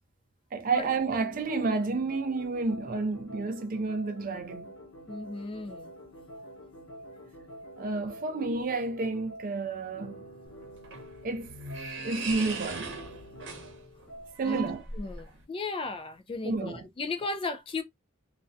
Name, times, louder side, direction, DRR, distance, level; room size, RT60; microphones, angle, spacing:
voice 1, 0.5-4.7 7.8-10.2 11.2-11.5 12.0-13.0 14.4-14.8 16.4-16.8, right 3 dB, 40° right, 0.4 m, -30 dB
sound 1, 0.8-14.4, equal, 60° left, 0.9 m, -47 dB
voice 2, 5.1-5.9 14.4-14.6 14.9-17.8, left 3 dB, 25° left, 0.3 m, -35 dB
sound 2, 10.5-15.4, right 4 dB, 60° right, 0.8 m, -40 dB
2.4 x 2.1 x 2.6 m
head